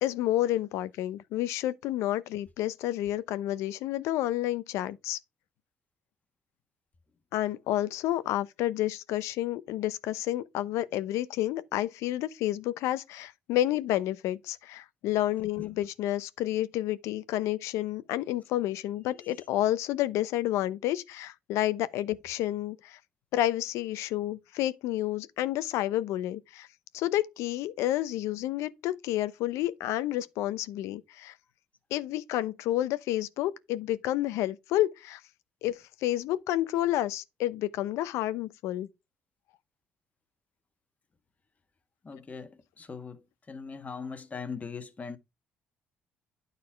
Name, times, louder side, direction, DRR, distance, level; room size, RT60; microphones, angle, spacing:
voice 1, 0.0-5.2 7.3-23.0 23.3-26.7 26.9-31.3 31.9-35.2 35.6-38.9, left 14 dB, 80° left, 0.7 m, -30 dB
voice 2, 19.1-19.5 42.0-43.2 43.5-45.2, left 5 dB, 30° left, 1.4 m, -40 dB
9.7 x 4.1 x 4.6 m
supercardioid pair, 75°, 5 cm